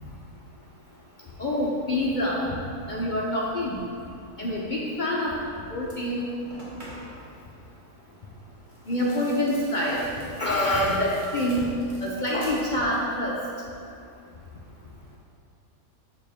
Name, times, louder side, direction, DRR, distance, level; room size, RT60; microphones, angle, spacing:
voice 1, 1.4-2.4 2.9-3.8 4.4-5.3 5.7-6.3 8.9-13.4, left 1 dB, 50° left, -4 dB, 0.6 m, -26 dB
sound 1, 5.4-5.5 5.8-7.3 8.6-13.2 13.5-14.1, equal, 35° right, 1.3 m, -47 dB
6.8 x 5.9 x 3.5 m, 2.4 s
omnidirectional pair, 1.6 m